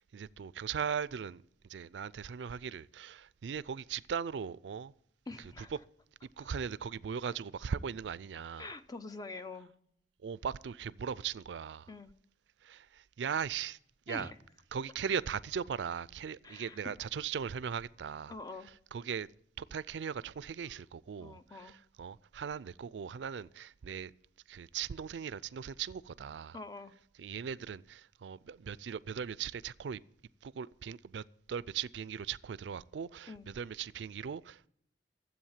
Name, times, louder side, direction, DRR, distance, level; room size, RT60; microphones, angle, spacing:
voice 1, 0.1-1.4 1.7-4.9 5.6-5.7 6.4-8.7 10.2-11.9 12.6-13.8 14.1-14.3 14.7-18.4 18.6-19.3 19.6-24.1 24.5-26.6 27.2-30.0 30.4-34.7, right 7 dB, 80° right, 0.4 m, -39 dB
voice 2, 5.3-5.7 8.6-9.7 11.9-12.1 14.1-14.3 16.4-16.8 18.3-18.7 20.6-20.8 21.2-21.8 26.5-26.9 33.3-33.5, left 3 dB, 20° left, 0.6 m, -45 dB
13.0 x 7.9 x 7.3 m
head